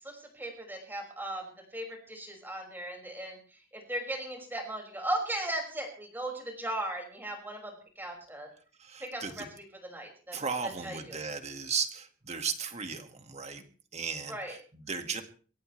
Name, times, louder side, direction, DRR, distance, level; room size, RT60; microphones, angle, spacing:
voice 1, 0.0-8.5 9.0-10.4 10.6-11.2 14.3-14.6, right 1 dB, 10° right, 1 dB, 5.9 m, -37 dB
voice 2, 8.8-9.5 10.3-13.6 13.9-15.2, right 5 dB, 35° right, 6 dB, 1.9 m, -36 dB
24.0 x 17.5 x 3.3 m, 0.41 s
head